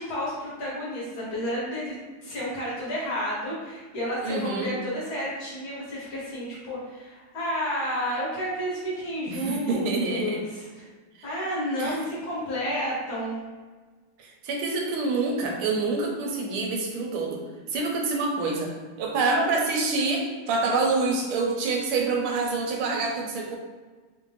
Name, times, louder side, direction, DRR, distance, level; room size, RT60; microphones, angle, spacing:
voice 1, 0.0-2.0 2.2-10.9 11.2-13.4, equal, 60° left, -6 dB, 1.3 m, -31 dB
voice 2, 4.2-4.7 9.3-10.4 11.8-12.0 14.2-17.4 17.7-18.7 19.0-23.6, right 3 dB, 90° right, 1 dB, 1.5 m, -26 dB
3.5 x 2.5 x 3.1 m, 1.4 s
omnidirectional pair, 2.3 m